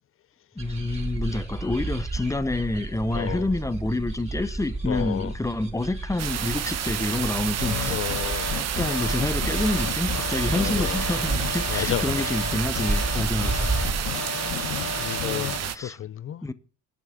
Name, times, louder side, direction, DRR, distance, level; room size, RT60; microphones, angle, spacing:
voice 1, 0.6-8.0 8.6-13.7 15.7-16.0 16.4-16.5, left 2 dB, 10° left, 0.9 m, -28 dB
sound 1, 0.6-14.1, right 2 dB, 20° right, 3.3 m, -32 dB
voice 2, 3.1-3.5 4.9-5.3 7.9-8.5 10.5-11.0 11.7-12.2 15.0-16.5, left 10 dB, 45° left, 0.5 m, -32 dB
sound 2, 6.2-15.8, right 9 dB, 60° right, 1.0 m, -30 dB
sound 3, 7.6-15.6, left 9 dB, 75° left, 1.1 m, -33 dB
11.0 x 6.2 x 8.6 m
cardioid pair, 90°, 30 cm